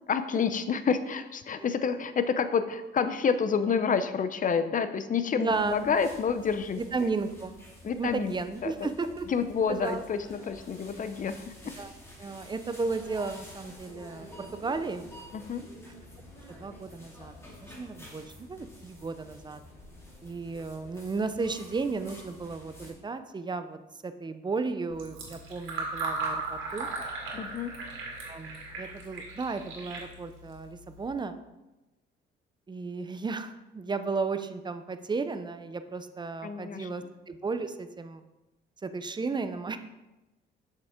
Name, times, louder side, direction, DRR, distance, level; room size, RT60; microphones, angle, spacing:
voice 1, 0.1-6.8 7.8-8.3 8.6-8.9 9.3-11.7 15.3-15.7 27.3-27.7 36.4-37.1, left 6 dB, 40° left, 11 dB, 0.6 m, -29 dB
voice 2, 5.3-5.8 6.8-7.6 7.9-9.3 9.7-10.0 11.8-11.9 12.2-15.1 15.9-16.0 16.6-17.3 17.6-19.6 20.2-26.9 28.2-31.3 32.7-38.2 38.8-39.8, right 4 dB, 20° right, 10 dB, 0.6 m, -34 dB
sound 1, 5.5-22.9, left 1 dB, 15° left, 2.3 m, -49 dB
Fill (with liquid), 24.9-31.1, right 3 dB, 80° right, 2.1 m, -37 dB
7.1 x 6.6 x 3.7 m, 1.0 s
cardioid pair, 90°, 20 cm